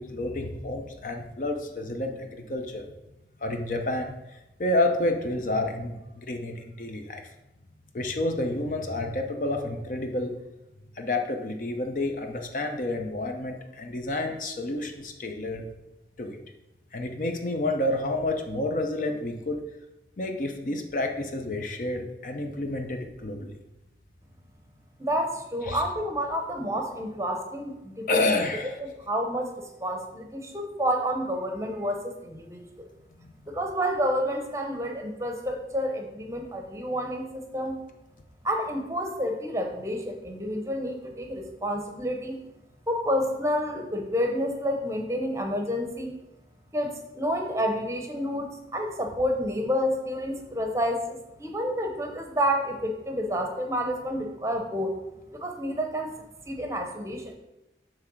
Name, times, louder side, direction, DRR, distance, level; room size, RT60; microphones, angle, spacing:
voice 1, 0.0-2.8 3.4-7.3 7.9-10.3 10.9-15.6 16.2-16.4 16.9-19.6 20.2-23.6 25.7-25.8 28.1-28.8 33.2-33.5, left 2 dB, 45° left, 4 dB, 0.6 m, -29 dB
voice 2, 25.0-28.3 29.1-32.6 33.5-37.8 38.4-42.4 42.9-46.1 46.7-54.9 55.3-56.1 56.5-57.3, equal, 15° right, 3 dB, 0.7 m, -29 dB
7.6 x 3.3 x 6.1 m, 0.97 s
head